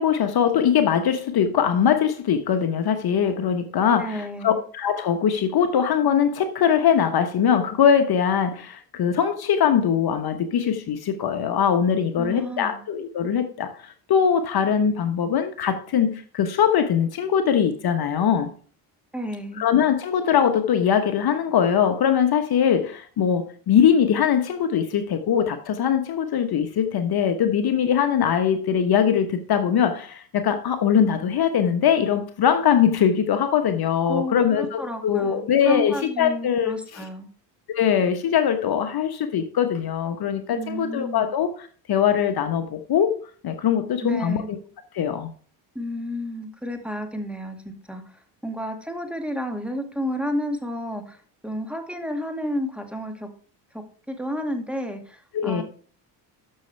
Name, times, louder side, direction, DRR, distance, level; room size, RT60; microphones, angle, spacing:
voice 1, 0.0-18.5 19.6-37.0 37.7-43.2 43.4-44.6 44.9-45.3 55.3-55.6, left 8 dB, 50° left, 7 dB, 1.2 m, -22 dB
voice 2, 3.9-4.6 12.2-12.8 19.1-19.6 34.0-37.3 40.5-41.3 44.0-44.5 45.7-53.3 54.1-55.6, left 1 dB, ahead, 4 dB, 2.0 m, -31 dB
12.0 x 6.5 x 3.4 m, 0.43 s
supercardioid pair, 75°, 49 cm